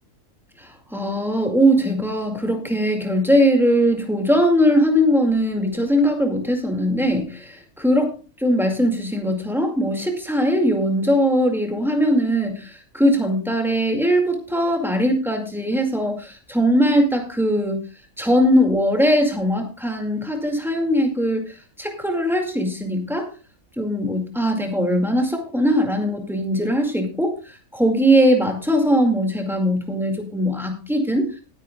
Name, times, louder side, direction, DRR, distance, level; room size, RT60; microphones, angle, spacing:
voice 1, 0.6-8.1 8.4-17.8 18.2-23.3 23.8-31.3, equal, ahead, 2 dB, 2.2 m, -20 dB
19.0 x 9.2 x 2.4 m, 0.33 s
omnidirectional pair, 1.5 m